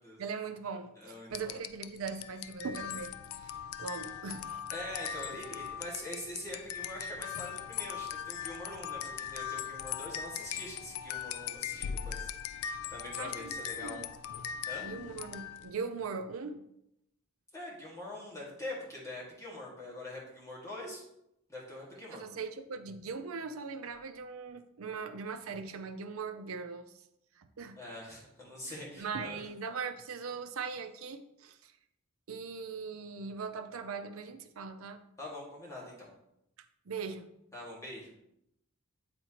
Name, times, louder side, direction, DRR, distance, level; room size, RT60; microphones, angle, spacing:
voice 1, 0.2-4.6 5.5-5.7 11.7-11.8 13.2-14.1 14.8-16.6 22.1-27.0 27.4-27.8 28.7-31.7 32.3-35.0 36.9-37.3, right 5 dB, 80° right, 8 dB, 0.5 m, -40 dB
voice 2, 1.0-1.5 4.7-14.0 14.7-14.9 17.5-21.0 21.5-22.2 27.8-29.4 35.2-36.1 37.5-38.1, left 1 dB, 15° left, -5 dB, 1.8 m, -44 dB
sound 1, 1.3-15.8, left 9 dB, 80° left, 0.3 m, -40 dB
7.9 x 4.3 x 2.9 m, 0.81 s
head